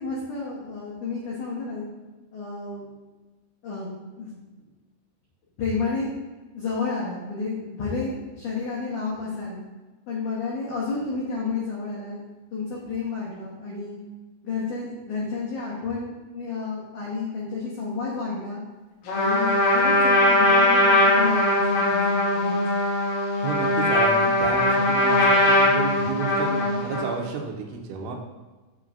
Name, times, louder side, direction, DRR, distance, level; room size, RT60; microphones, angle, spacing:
voice 1, 0.0-1.9 2.3-2.9 3.6-3.9 4.2-4.4 5.6-6.1 6.5-9.6 10.1-12.2 12.5-14.0 14.4-18.6 19.1-22.6, left 4 dB, 90° left, -6 dB, 1.7 m, -31 dB
Trumpet, 19.1-27.2, left 1 dB, 65° left, 2.4 m, -20 dB
voice 2, 23.4-28.2, right 5 dB, 80° right, 2 dB, 3.0 m, -31 dB
7.5 x 6.5 x 2.5 m, 1.2 s
omnidirectional pair, 5.3 m